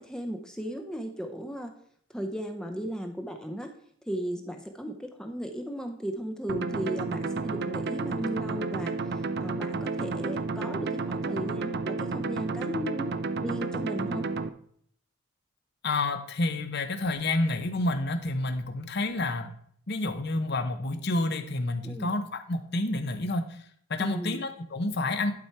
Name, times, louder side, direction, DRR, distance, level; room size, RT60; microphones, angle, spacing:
voice 1, 0.0-1.7 2.1-3.7 4.1-14.3 21.8-22.1 24.0-24.4, equal, 5° left, 4 dB, 0.6 m, -36 dB
sound 1, 6.5-14.5, right 3 dB, 50° right, 0.5 m, -31 dB
voice 2, 15.8-19.5 19.9-23.6 23.9-25.3, left 2 dB, 50° left, 8 dB, 0.8 m, -29 dB
11.5 x 4.4 x 4.6 m, 0.64 s
head